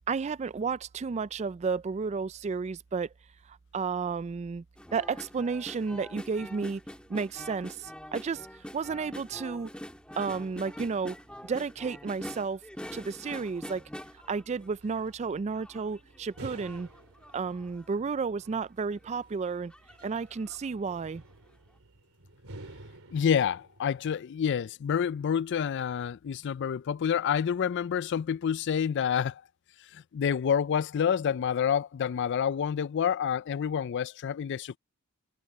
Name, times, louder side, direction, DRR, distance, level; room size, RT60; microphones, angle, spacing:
voice 1, 0.1-3.1 3.5-4.6 4.9-6.8 7.1-8.5 8.7-9.7 10.2-11.2 11.4-12.6 12.9-13.8 14.3-16.9 17.3-19.7 20.0-21.2, right 5 dB, 30° right, 0.3 m, -32 dB
sound 1, 4.8-15.1 15.5-18.0 18.5-18.6 18.9-19.2 19.7-20.7 21.0-21.1, equal, 5° left, 1.6 m, -45 dB
sound 2, 14.8-24.1, right 2 dB, 70° right, 3.1 m, -51 dB
voice 2, 23.1-29.4 29.9-34.8, left 8 dB, 50° left, 0.3 m, -28 dB
head